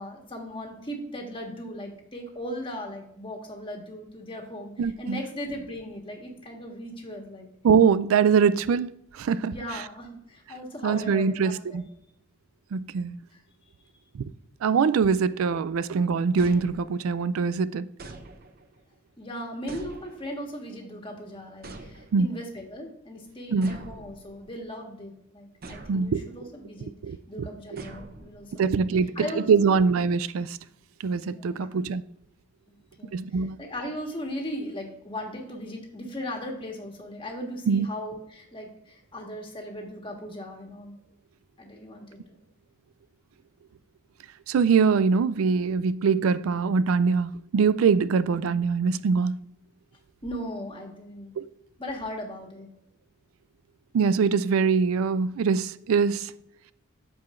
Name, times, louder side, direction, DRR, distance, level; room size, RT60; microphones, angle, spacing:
voice 1, 0.0-7.5 9.5-11.8 13.3-13.4 19.2-26.9 27.3-28.7 29.1-29.8 31.3-31.7 32.7-33.2 33.6-41.0 41.6-42.2 50.2-51.3 51.8-52.7, equal, 25° left, 1.5 m, -38 dB
voice 2, 4.8-5.2 7.6-9.8 10.8-11.8 12.7-13.2 14.1-14.2 14.6-17.9 22.1-22.3 23.5-23.8 25.9-26.2 27.0-27.8 28.6-30.6 31.0-32.0 33.1-33.6 37.7-37.9 44.5-49.3 51.4-51.5 53.9-56.3, right 5 dB, 80° right, 0.4 m, -23 dB
sound 1, 16.4-17.3 18.0-18.8 19.7-20.5 21.6-22.4 23.6-24.6 25.6-26.4 27.8-28.7, right 2 dB, 45° right, 0.8 m, -45 dB
14.0 x 4.8 x 2.5 m
head